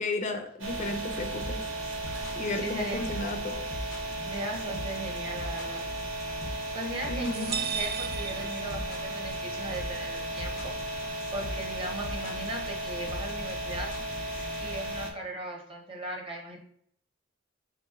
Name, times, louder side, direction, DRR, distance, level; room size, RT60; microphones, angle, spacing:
voice 1, 0.0-1.7 2.4-3.6 7.1-7.5, left 2 dB, 40° left, 5 dB, 0.4 m, -33 dB
sound 1, 0.6-15.1, right 1 dB, 70° right, 0.7 m, -35 dB
sound 2, 1.4-14.6, left 1 dB, 85° left, 0.6 m, -40 dB
voice 2, 2.3-3.3 4.2-5.9 6.7-11.0 11.3-14.0 14.6-16.6, right 1 dB, 25° right, 0 dB, 0.8 m, -38 dB
sound 3, 7.3-9.3, right 8 dB, 50° right, 0.3 m, -35 dB
3.2 x 2.9 x 3.6 m, 0.66 s
head